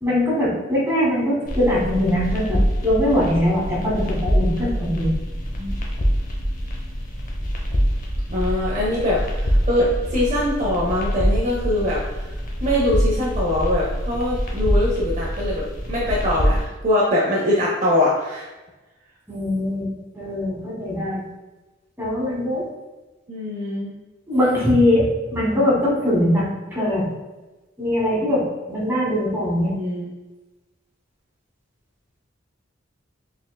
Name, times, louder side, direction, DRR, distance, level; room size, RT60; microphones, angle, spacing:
voice 1, 0.0-5.1 19.3-21.2 22.0-22.6 24.3-25.0 25.3-27.0 27.8-28.4 28.7-29.7, left 1 dB, 10° right, -6 dB, 1.3 m, -21 dB
sound 1, 1.5-16.6, equal, 45° left, 0.6 m, -24 dB
voice 2, 8.3-12.3 12.6-18.5 23.3-23.9 29.8-30.1, left 1 dB, 40° right, -5 dB, 0.6 m, -23 dB
4.4 x 3.6 x 2.2 m, 1.1 s
head